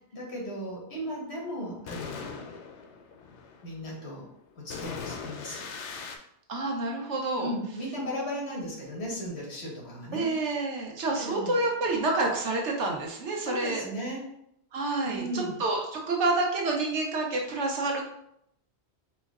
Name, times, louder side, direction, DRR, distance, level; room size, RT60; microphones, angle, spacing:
voice 1, 0.1-2.5 3.6-4.3 4.6-5.7 7.4-10.3 11.0-11.6 13.4-14.2 15.0-15.6, equal, 70° left, -3 dB, 1.5 m, -36 dB
sound 1, 1.0-6.2, left 5 dB, 85° left, 0.9 m, -41 dB
voice 2, 6.5-7.5 10.1-13.8 14.7-18.0, right 2 dB, 85° right, 0 dB, 1.1 m, -28 dB
4.3 x 2.1 x 3.5 m, 0.74 s
omnidirectional pair, 1.2 m